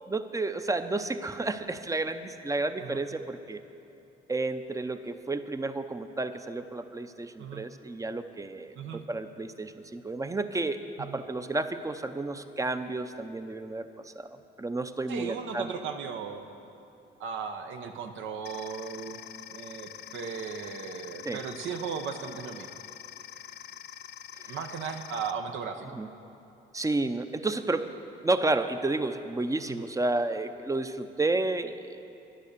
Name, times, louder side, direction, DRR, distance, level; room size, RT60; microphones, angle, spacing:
voice 1, 0.1-3.6 4.3-8.8 9.1-14.3 14.6-15.7 21.3-21.4 24.4-24.6 25.9-26.1 26.7-27.9 28.2-32.0, right 2 dB, 15° right, 9 dB, 0.6 m, -31 dB
voice 2, 15.1-16.5 17.2-19.2 19.5-22.8 24.5-26.0 29.7-29.8, right 6 dB, 75° right, 5 dB, 0.9 m, -36 dB
sound 1, 18.4-25.3, left 10 dB, 55° left, 0.5 m, -45 dB
11.5 x 10.0 x 6.7 m, 2.8 s
cardioid pair, 90°, 20 cm